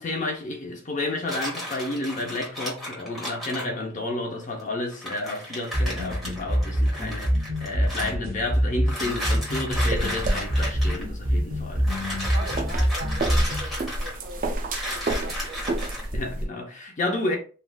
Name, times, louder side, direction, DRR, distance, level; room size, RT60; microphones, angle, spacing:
voice 1, 0.0-11.9 16.1-17.4, left 2 dB, 35° left, 0.6 m, -31 dB
sound 1, 1.3-3.7 4.6-4.7 4.9-8.1 8.8-11.0 11.8-14.3 14.7-16.1, equal, ahead, 1.1 m, -34 dB
sound 2, 5.7-13.8, equal, 75° right, 0.8 m, -26 dB
sound 3, 9.7-16.4, right 1 dB, 40° right, 0.4 m, -30 dB
voice 2, 12.3-15.8, right 1 dB, 55° right, 1.3 m, -41 dB
3.3 x 2.5 x 2.2 m
head